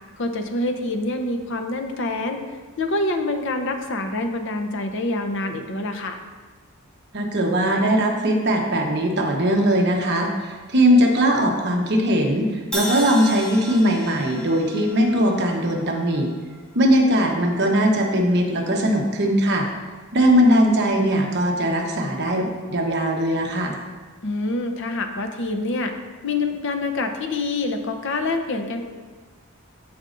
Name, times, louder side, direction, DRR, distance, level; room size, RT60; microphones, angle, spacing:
voice 1, 0.2-2.4 2.8-6.2 24.2-25.9 26.2-28.8, left 2 dB, 60° left, 5 dB, 0.7 m, -26 dB
voice 2, 7.1-16.3 16.7-19.7 20.1-23.8, equal, 50° right, 1 dB, 1.0 m, -20 dB
Crash cymbal, 12.7-16.8, equal, 5° left, 1.2 m, -34 dB
14.0 x 5.2 x 2.6 m, 1.4 s
head